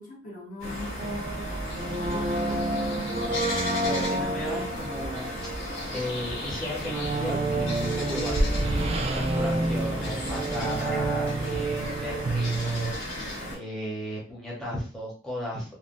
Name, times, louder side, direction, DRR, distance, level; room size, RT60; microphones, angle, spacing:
voice 1, 0.0-3.3, left 2 dB, 45° left, -4 dB, 1.0 m, -41 dB
sound 1, 0.6-13.6, left 1 dB, 80° left, 1.2 m, -35 dB
sound 2, 1.0-12.9, right 2 dB, 30° right, 0.3 m, -29 dB
voice 2, 3.8-8.5 8.9-13.0 13.5-15.7, equal, 5° left, -6 dB, 0.8 m, -35 dB
sound 3, 4.8-12.4, equal, 60° left, 0.7 m, -42 dB
3.1 x 2.1 x 2.5 m, 0.40 s
head